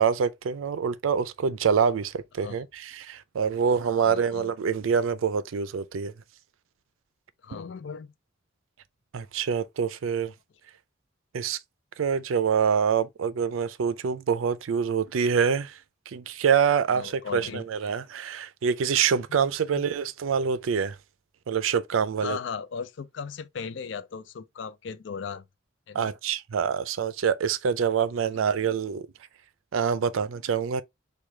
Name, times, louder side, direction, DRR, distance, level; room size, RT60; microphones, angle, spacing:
voice 1, 0.0-6.1 7.5-7.6 9.1-10.3 11.3-11.6 12.0-15.8 16.1-21.0 21.5-22.4 25.9-29.1 29.7-30.8, right 7 dB, 85° right, 0.4 m, -26 dB
voice 2, 4.0-4.5 7.4-8.1 16.9-17.9 19.7-19.8 22.2-25.5 25.9-26.1, left 6 dB, 65° left, 0.4 m, -37 dB
4.8 x 2.3 x 3.2 m
head